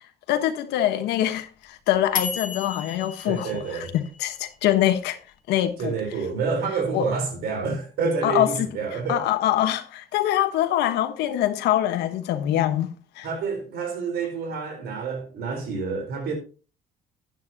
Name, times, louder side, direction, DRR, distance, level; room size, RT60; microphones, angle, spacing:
voice 1, 0.3-5.2 5.5-5.9 6.9-7.1 8.2-8.7 9.1-13.3, left 12 dB, 85° left, 1.2 m, -24 dB
sound 1, 1.1-4.4, left 5 dB, 50° left, 1.5 m, -33 dB
voice 2, 3.3-3.9 5.8-9.2 13.2-16.3, right 5 dB, 70° right, 4.0 m, -28 dB
12.0 x 9.3 x 2.8 m
cardioid pair, 110°, 17 cm